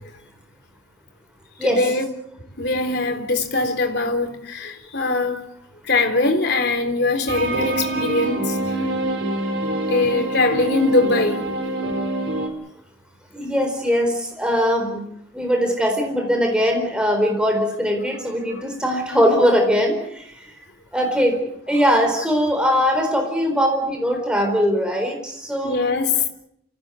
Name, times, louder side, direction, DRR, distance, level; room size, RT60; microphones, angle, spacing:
voice 1, 1.6-2.0 2.6-5.5 5.9-8.6 9.9-11.4 25.6-26.2, left 3 dB, 55° left, 3.8 m, -21 dB
sound 1, 7.3-12.5, right 1 dB, 60° right, 3.7 m, -25 dB
voice 2, 13.3-15.0 15.3-20.2 20.9-21.4 21.7-25.8, equal, 5° right, 4.2 m, -20 dB
28.5 x 16.5 x 8.3 m
head